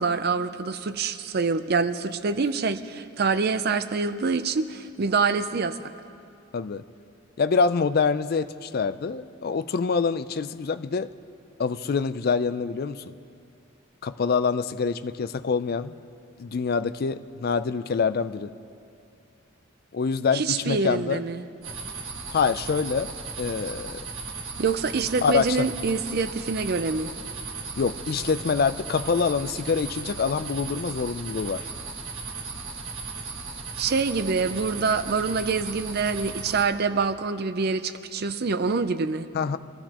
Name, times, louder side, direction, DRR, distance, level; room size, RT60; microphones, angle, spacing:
voice 1, 0.0-5.9 20.3-21.4 24.6-27.2 33.8-39.3, right 4 dB, 50° right, 10 dB, 0.5 m, -26 dB
voice 2, 6.5-6.8 7.4-11.1 11.6-13.0 14.0-15.9 16.4-18.5 19.9-21.2 22.3-23.1 23.4-24.0 25.2-25.7 27.8-31.6 39.3-39.6, left 5 dB, 45° left, 12 dB, 0.4 m, -25 dB
sound 1, 21.6-36.7, right 4 dB, 70° right, 1.6 m, -36 dB
23.5 x 13.0 x 2.9 m, 2.6 s
head